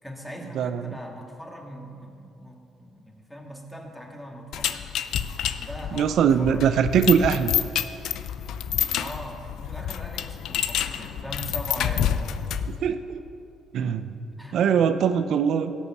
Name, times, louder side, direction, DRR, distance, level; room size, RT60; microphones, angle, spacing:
voice 1, 0.0-4.8 5.6-6.8 8.9-12.4 14.3-14.6, equal, 5° left, 0 dB, 2.2 m, -40 dB
voice 2, 0.5-1.0 5.9-7.6 12.7-13.2 13.7-14.1 14.5-15.7, right 7 dB, 65° right, 10 dB, 0.7 m, -22 dB
sound 1, 4.5-12.8, left 10 dB, 75° left, 0.5 m, -28 dB
17.0 x 7.1 x 6.0 m, 2.6 s
cardioid pair, 80°, 0 cm